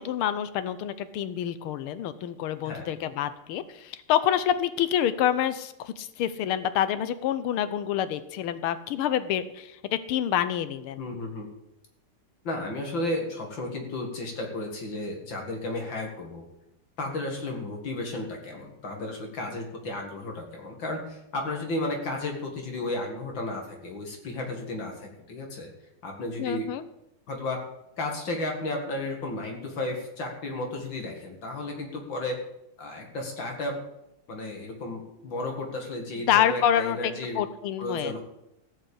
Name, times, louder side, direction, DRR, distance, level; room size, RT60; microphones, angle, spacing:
voice 1, 0.0-11.0 26.4-26.8 36.3-38.2, left 10 dB, 85° left, 13 dB, 1.7 m, -27 dB
voice 2, 11.0-11.5 12.4-16.4 17.0-25.7 26.0-26.7 27.3-27.6 28.0-32.4 32.8-33.8 34.3-37.4 37.8-38.2, left 2 dB, 60° left, 2 dB, 2.7 m, -33 dB
15.5 x 6.1 x 8.5 m, 0.86 s
omnidirectional pair, 2.3 m